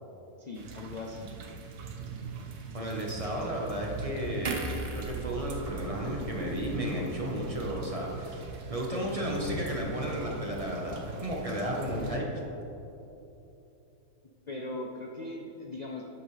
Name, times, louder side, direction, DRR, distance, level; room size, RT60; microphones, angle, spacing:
voice 1, 0.4-1.3 14.5-16.0, left 2 dB, 60° left, 0 dB, 0.4 m, -39 dB
sound 1, 0.5-12.2, right 5 dB, 75° right, 1.4 m, -42 dB
voice 2, 2.7-4.6 4.9-8.4 8.7-12.2, equal, 25° right, -2 dB, 1.1 m, -33 dB
sound 2, 4.4-7.8 8.2-8.3, right 3 dB, 45° right, 0.6 m, -39 dB
11.5 x 8.6 x 3.3 m, 2.9 s
omnidirectional pair, 1.7 m